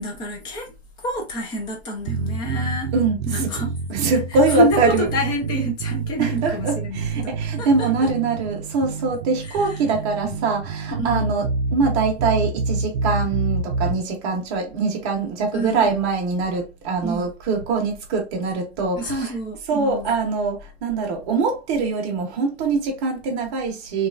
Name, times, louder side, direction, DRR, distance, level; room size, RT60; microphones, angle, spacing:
voice 1, 0.0-2.9 3.3-3.7 4.1-8.1 9.4-10.5 11.0-11.4 15.5-15.9 17.0-17.3 18.9-20.2, equal, 15° left, 0.5 m, -28 dB
sound 1, 2.1-14.0, right 4 dB, 55° right, 0.5 m, -27 dB
voice 2, 2.9-3.5 3.9-5.1 6.2-19.3 19.7-24.1, right 4 dB, 25° right, 0.8 m, -23 dB
2.9 x 2.4 x 2.3 m
hypercardioid pair, 150°, 32 cm